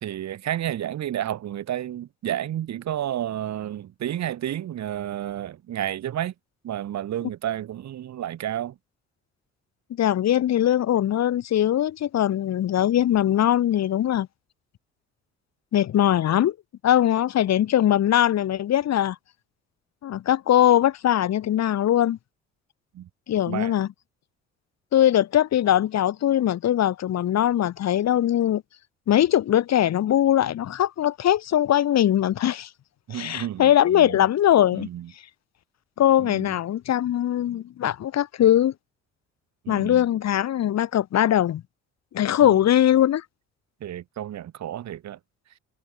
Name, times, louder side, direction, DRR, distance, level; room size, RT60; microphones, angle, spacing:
voice 1, 0.0-6.3 6.6-8.7 22.9-23.1 23.5-23.7 33.1-34.2 34.7-35.1 36.2-36.6 39.6-40.0 42.4-42.6 43.8-45.2, right 11 dB, 65° right, 2.5 m, -31 dB
voice 2, 9.9-14.3 15.7-16.5 16.8-19.2 20.0-22.2 23.3-23.9 24.9-28.6 29.1-32.7 33.1-34.9 36.0-38.7 39.7-41.6 42.1-43.2, left 11 dB, 65° left, 1.7 m, -21 dB
supercardioid pair, 60°, 29 cm